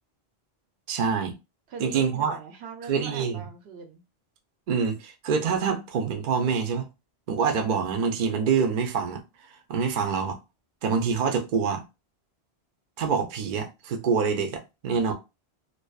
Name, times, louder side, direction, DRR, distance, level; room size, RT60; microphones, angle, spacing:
voice 1, 0.9-1.4 1.8-2.4 2.9-3.4 4.7-6.9 7.3-9.2 9.7-10.4 10.8-11.8 13.0-15.1, right 6 dB, 55° right, 0.6 m, -26 dB
voice 2, 1.7-4.0, right 5 dB, 85° right, 0.9 m, -41 dB
2.6 x 2.2 x 2.3 m
omnidirectional pair, 1.1 m